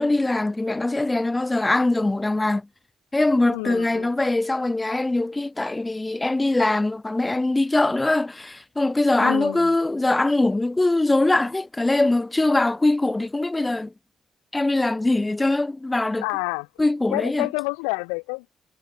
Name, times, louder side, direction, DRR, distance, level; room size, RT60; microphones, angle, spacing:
voice 1, 0.0-2.7 3.1-13.9 14.5-16.2 16.8-17.5, left 2 dB, 20° left, 4.4 m, -22 dB
voice 2, 3.5-4.1 9.2-9.7 16.2-16.7 17.1-18.5, left 40 dB or more, 90° left, 3.8 m, -29 dB
hypercardioid pair, 50°, 0 cm